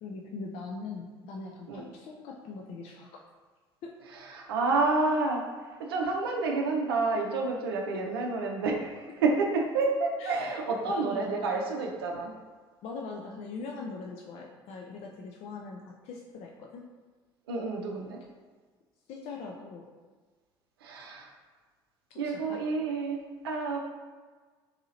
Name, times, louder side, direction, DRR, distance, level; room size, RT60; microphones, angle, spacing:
voice 1, 0.0-3.2 3.8-4.0 10.2-10.4 10.7-11.3 12.8-16.9 19.1-19.9 22.2-22.6, left 4 dB, 55° left, 0 dB, 0.4 m, -41 dB
voice 2, 4.1-12.3 17.5-18.2 20.8-21.3 22.2-23.8, right 3 dB, 85° right, 1 dB, 0.4 m, -29 dB
3.9 x 2.7 x 2.8 m, 1.4 s
hypercardioid pair, 60°, 12 cm